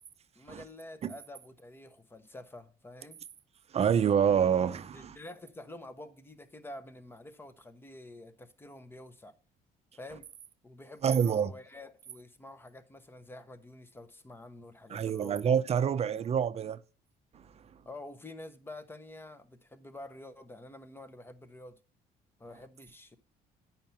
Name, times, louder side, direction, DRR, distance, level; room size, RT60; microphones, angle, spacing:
voice 1, 0.3-3.2 4.9-9.3 9.9-10.3 10.6-15.5 17.8-21.8 22.4-23.2, left 1 dB, 15° left, 0.9 m, -48 dB
voice 2, 3.7-5.2 11.0-11.5 14.9-16.8 17.3-17.5, right 8 dB, 40° right, 0.6 m, -27 dB
9.0 x 5.7 x 5.5 m
cardioid pair, 110°, 17 cm